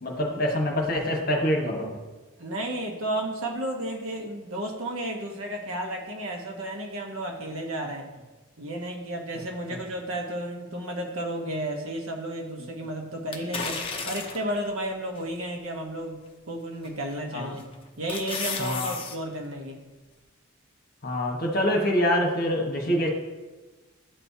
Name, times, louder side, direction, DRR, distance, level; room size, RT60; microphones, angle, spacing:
voice 1, 0.0-1.9 17.3-17.5 18.6-18.9 21.0-23.1, equal, 45° left, 1 dB, 1.2 m, -25 dB
voice 2, 2.4-8.1 8.6-16.2 16.5-17.6 18.0-19.8, right 1 dB, 70° right, 2 dB, 1.1 m, -32 dB
sound 1, 13.3-14.6 15.2-15.3 16.8-17.2 17.6-19.2 19.5-19.6, left 5 dB, 25° left, 0.6 m, -33 dB
11.5 x 4.4 x 2.8 m, 1.2 s
head